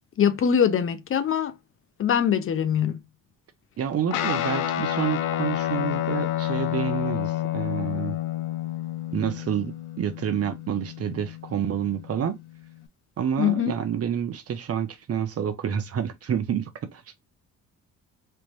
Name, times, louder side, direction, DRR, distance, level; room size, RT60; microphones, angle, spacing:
voice 1, 0.2-1.5 2.0-3.0 13.4-13.7, left 8 dB, 45° left, 0.6 m, -22 dB
voice 2, 3.8-8.2 9.1-12.4 13.2-17.0, right 8 dB, 50° right, 0.9 m, -28 dB
Guitar, 4.1-12.9, left 12 dB, 90° left, 0.6 m, -30 dB
3.3 x 2.6 x 3.1 m
cardioid pair, 90°, 30 cm